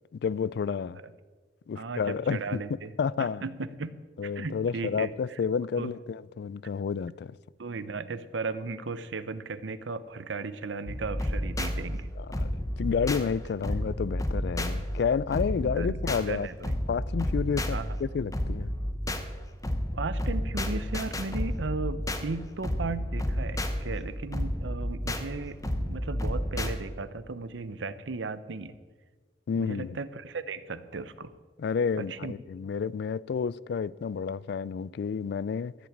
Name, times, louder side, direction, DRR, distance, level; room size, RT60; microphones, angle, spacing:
voice 1, 0.1-1.0 1.7-3.4 4.2-7.4 12.2-16.5 16.9-18.7 29.5-30.0 31.6-35.7, left 6 dB, 65° left, 0.3 m, -30 dB
voice 2, 1.8-2.9 3.2-5.1 5.8-5.9 7.6-12.1 15.6-16.0 16.3-16.7 17.7-18.0 19.9-28.7 29.5-31.3 32.0-32.3, right 3 dB, 90° right, 0.7 m, -36 dB
sound 1, 10.9-26.7, equal, 20° left, 0.9 m, -31 dB
14.5 x 5.9 x 8.6 m
head